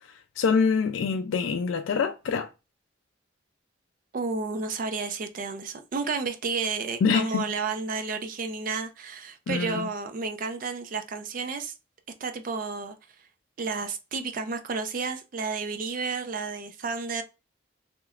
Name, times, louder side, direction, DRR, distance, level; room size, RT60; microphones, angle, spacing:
voice 1, 0.4-2.5 7.0-7.5 9.5-9.9, left 5 dB, 80° left, 0.3 m, -25 dB
voice 2, 4.1-11.7 12.2-12.9 13.6-17.2, right 4 dB, 45° right, 0.4 m, -31 dB
3.1 x 2.9 x 2.4 m
head